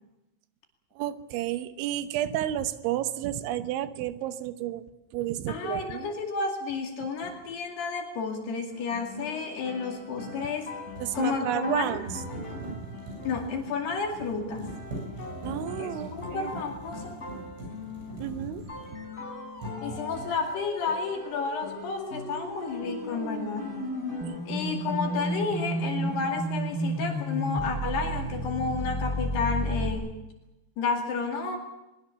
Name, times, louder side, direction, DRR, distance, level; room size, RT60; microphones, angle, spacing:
voice 1, 1.0-4.9 5.1-6.1 11.0-12.1 12.6-12.8 15.4-16.5 18.2-18.6, right 12 dB, 90° right, 10 dB, 3.4 m, -31 dB
voice 2, 5.5-10.7 11.1-12.0 13.2-14.8 15.8-17.2 19.8-23.8 24.5-30.2 30.8-31.6, left 4 dB, 65° left, 2 dB, 4.3 m, -31 dB
sound 1, 7.2-7.4 10.4-19.2 19.6-20.4, right 1 dB, 70° right, 10.0 m, -41 dB
sound 2, 8.7-24.5 24.8-26.5, left 3 dB, 15° left, 4.1 m, -43 dB
sound 3, 18.6-29.9, right 1 dB, 5° right, 4.1 m, -33 dB
22.0 x 22.0 x 7.0 m, 0.97 s
omnidirectional pair, 5.2 m